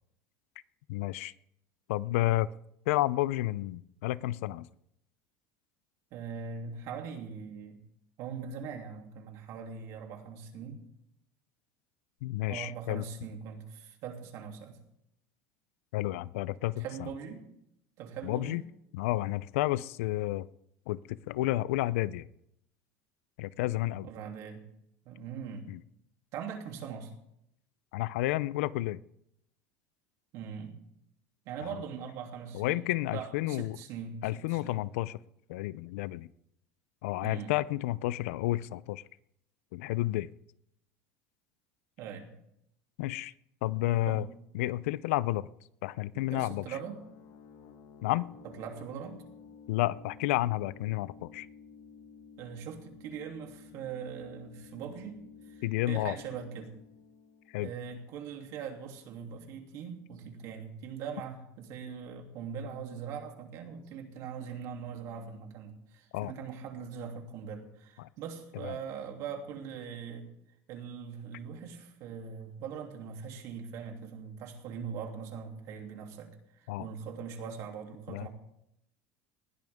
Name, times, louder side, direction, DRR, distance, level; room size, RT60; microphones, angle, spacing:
voice 1, 0.9-1.3 1.9-2.5 2.9-4.7 12.2-13.0 15.9-17.1 18.2-18.6 18.9-20.5 20.9-22.3 23.4-24.1 25.7-25.8 27.9-29.0 31.6-31.8 32.5-33.8 34.2-35.2 35.5-36.3 37.0-39.0 39.7-40.3 43.0-43.3 43.6-44.3 44.5-45.5 45.8-46.7 48.0-48.3 49.7-51.5 55.6-56.2 57.5-57.7 66.1-66.3 68.0-68.1 68.5-68.7 76.7-76.9 78.1-78.3, left 17 dB, 85° left, 19 dB, 0.5 m, -31 dB
voice 2, 6.1-7.8 8.2-10.8 12.5-14.8 16.8-17.4 18.0-18.6 24.0-24.6 25.0-25.7 26.3-27.1 30.3-30.8 31.4-32.8 33.1-34.8 37.2-37.5 42.0-42.3 44.1-44.3 46.3-47.0 48.6-49.2 52.4-56.7 57.6-70.3 70.7-78.3, right 7 dB, 50° right, 3 dB, 2.9 m, -41 dB
sound 1, 46.8-58.3, left 6 dB, 55° left, 1.5 m, -53 dB
20.0 x 16.0 x 3.6 m, 0.77 s
cardioid pair, 160°, 7 cm